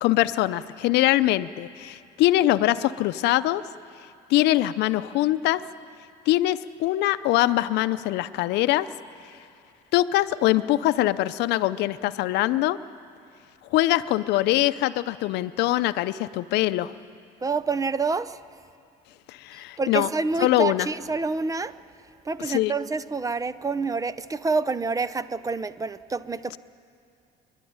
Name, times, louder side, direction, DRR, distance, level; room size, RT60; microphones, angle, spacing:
voice 1, 0.0-3.6 4.3-5.6 6.3-8.9 9.9-12.8 13.7-16.9 19.3-20.1 20.4-20.9 22.4-22.7, left 15 dB, 85° left, 14 dB, 0.6 m, -23 dB
voice 2, 17.4-18.4 19.8-21.7 22.2-26.6, right 4 dB, 20° right, 15 dB, 0.5 m, -27 dB
27.0 x 12.0 x 9.6 m, 2.5 s
cardioid pair, 110°, 17 cm